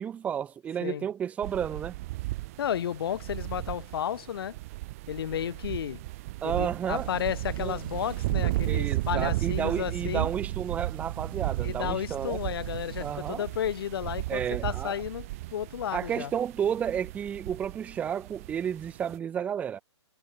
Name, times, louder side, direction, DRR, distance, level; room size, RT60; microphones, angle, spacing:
voice 1, 0.0-1.9 6.4-7.1 7.6-7.8 8.7-12.4 13.0-13.4 14.3-15.0 15.9-19.8, right 8 dB, 10° right, 0.9 m, -31 dB
sound 1, 1.4-19.2, right 19 dB, 30° right, 1.5 m, -35 dB
voice 2, 2.6-4.6 5.1-6.0 6.4-10.3 11.6-16.3, left 9 dB, 50° left, 1.8 m, -33 dB
sound 2, 6.9-13.1, right 11 dB, 45° right, 1.1 m, -40 dB
hypercardioid pair, 160°, 15 cm